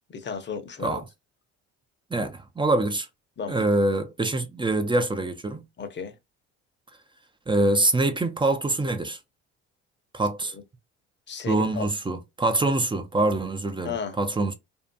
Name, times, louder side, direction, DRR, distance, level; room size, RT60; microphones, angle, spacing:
voice 1, 0.1-1.0 3.4-3.6 5.8-6.1 10.5-10.6 11.3-11.9 13.8-14.2, left 6 dB, 30° left, 0.8 m, -34 dB
voice 2, 2.1-3.1 3.5-5.6 7.5-9.2 10.1-10.5 11.5-14.5, right 2 dB, 15° right, 0.5 m, -25 dB
2.7 x 2.4 x 2.2 m
hypercardioid pair, 70°, 35 cm